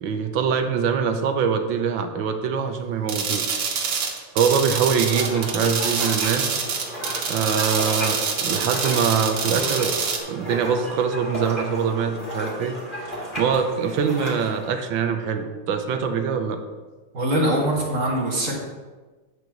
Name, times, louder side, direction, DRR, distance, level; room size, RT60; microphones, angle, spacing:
voice 1, 0.0-3.6 3.9-6.5 7.3-9.9 10.3-12.7 13.0-16.6, right 6 dB, 70° right, 6 dB, 1.4 m, -24 dB
sound 1, 3.1-10.2, right 5 dB, 90° right, 2.0 m, -26 dB
sound 2, 4.8-14.7, equal, 25° left, 2.2 m, -33 dB
voice 2, 17.1-18.6, right 1 dB, 40° right, -2 dB, 1.7 m, -22 dB
9.5 x 3.9 x 5.9 m, 1.3 s
omnidirectional pair, 2.3 m